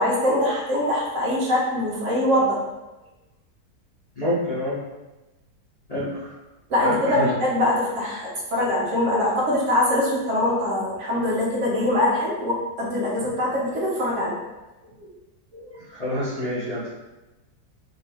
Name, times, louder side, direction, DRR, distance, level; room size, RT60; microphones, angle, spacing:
voice 1, 0.0-2.6 6.7-14.5 15.0-15.1 15.5-15.6, left 1 dB, 55° right, -5 dB, 1.1 m, -23 dB
voice 2, 4.2-4.8 5.9-6.3 6.8-7.3 15.9-16.9, equal, 45° left, -11 dB, 0.5 m, -27 dB
3.0 x 2.7 x 3.3 m, 1.1 s
omnidirectional pair, 1.8 m